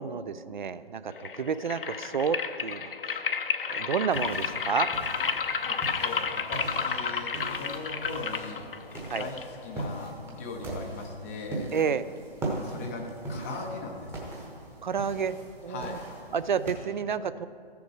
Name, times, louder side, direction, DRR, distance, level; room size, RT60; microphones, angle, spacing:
voice 1, 0.0-3.2 3.7-4.9 9.1-9.3 11.7-12.0 14.8-15.4 15.6-16.0 16.3-17.5, right 6 dB, 50° right, 14 dB, 0.4 m, -30 dB
sound 1, 1.1-10.1, left 6 dB, 60° left, 0.7 m, -32 dB
sound 2, 4.1-16.7, right 2 dB, 10° right, 1.0 m, -40 dB
voice 2, 5.6-8.7 9.2-11.7 12.6-14.4 15.7-16.1, left 3 dB, 15° left, 1 dB, 0.5 m, -39 dB
14.0 x 6.9 x 4.8 m, 2.3 s
figure-of-eight pair, 140°, 31 cm